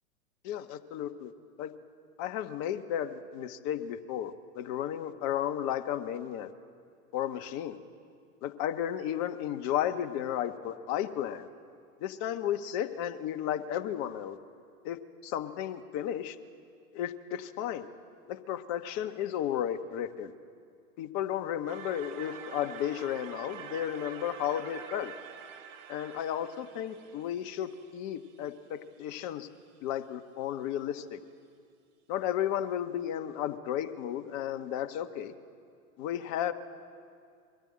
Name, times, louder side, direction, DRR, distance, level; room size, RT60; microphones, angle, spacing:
voice 1, 0.4-1.3 1.6-1.7 2.2-6.5 7.1-7.8 8.4-11.5 12.0-14.4 14.8-16.4 16.9-17.9 18.3-20.3 21.0-25.1 25.9-29.5 29.8-31.2 32.1-35.3 36.0-36.5, left 10 dB, 40° left, 8 dB, 1.3 m, -33 dB
sound 1, 21.7-28.5, right 8 dB, 60° right, 2.1 m, -46 dB
23.0 x 14.5 x 8.7 m, 2.3 s
hypercardioid pair, 105°, 43 cm